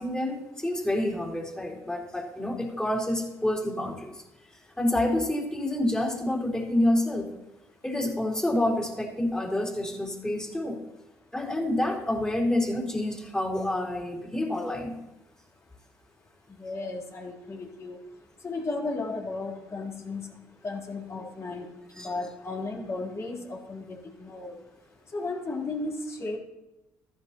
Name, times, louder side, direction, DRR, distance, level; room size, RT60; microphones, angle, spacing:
voice 1, 0.0-4.1 4.8-7.3 7.8-10.8 11.3-15.0 22.0-22.1, left 1 dB, 10° left, -2 dB, 3.9 m, -28 dB
voice 2, 16.6-18.0 18.4-20.3 20.6-21.7 22.0-24.6 25.1-26.4, left 3 dB, 40° left, -3 dB, 3.7 m, -34 dB
14.5 x 10.5 x 3.0 m, 0.96 s
supercardioid pair, 65°, 8 cm